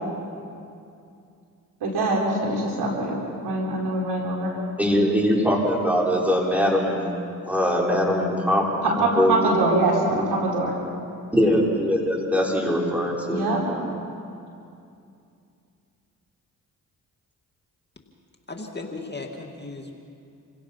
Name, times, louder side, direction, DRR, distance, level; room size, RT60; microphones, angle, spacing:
voice 1, 1.8-4.6 8.8-10.8 13.2-13.6, right 2 dB, 80° right, -1 dB, 4.4 m, -24 dB
voice 2, 4.8-7.1 7.5-8.6 9.0-9.3 11.3-13.8, equal, 5° right, -3 dB, 6.1 m, -22 dB
voice 3, 18.5-19.9, left 3 dB, 25° left, 2 dB, 2.4 m, -36 dB
28.0 x 16.5 x 6.0 m, 2.5 s
supercardioid pair, 50°, 38 cm